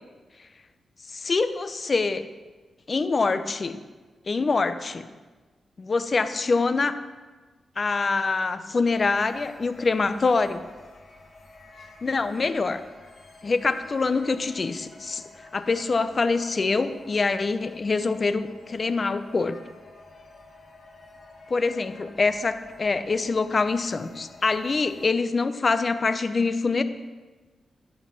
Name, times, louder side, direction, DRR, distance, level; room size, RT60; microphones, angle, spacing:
voice 1, 1.1-2.2 2.9-3.8 4.3-5.1 5.8-7.0 7.8-10.7 12.0-12.8 13.4-15.2 15.5-19.6 21.5-26.8, left 4 dB, 40° left, 11 dB, 0.6 m, -25 dB
sound 1, 8.9-25.1, left 3 dB, 60° left, 1.7 m, -50 dB
11.0 x 6.1 x 5.7 m, 1.3 s
cardioid pair, 85°, 0 cm